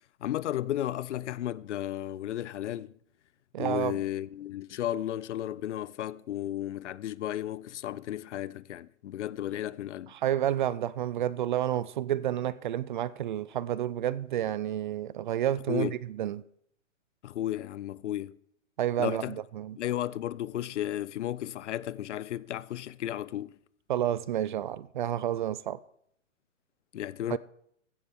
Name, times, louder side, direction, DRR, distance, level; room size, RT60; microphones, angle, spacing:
voice 1, 0.2-2.9 3.6-10.1 15.7-15.9 17.2-18.3 19.0-19.4 19.8-23.5 26.9-27.4, left 12 dB, 65° left, 0.6 m, -34 dB
voice 2, 3.5-4.0 10.1-16.4 18.8-19.8 23.9-25.8 27.3-27.4, right 11 dB, 40° right, 0.4 m, -30 dB
15.5 x 12.0 x 3.6 m
hypercardioid pair, 135°, 39 cm